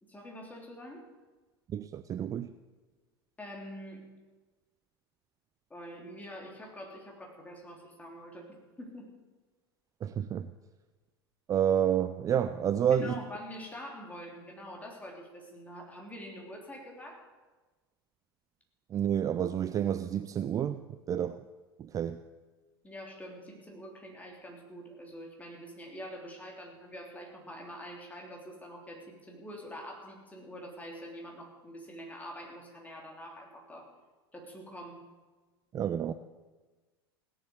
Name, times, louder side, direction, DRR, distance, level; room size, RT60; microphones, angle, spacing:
voice 1, 0.1-1.0 3.4-4.0 5.7-9.1 12.9-17.2 22.8-33.9 34.3-35.0, equal, 10° left, 0 dB, 3.3 m, -45 dB
voice 2, 1.7-2.5 10.0-10.5 11.5-13.2 18.9-20.8 21.1-21.4 21.8-22.2 35.7-36.1, right 9 dB, 25° right, 11 dB, 0.5 m, -29 dB
17.0 x 7.3 x 7.9 m, 1.3 s
figure-of-eight pair, 85°, 13 cm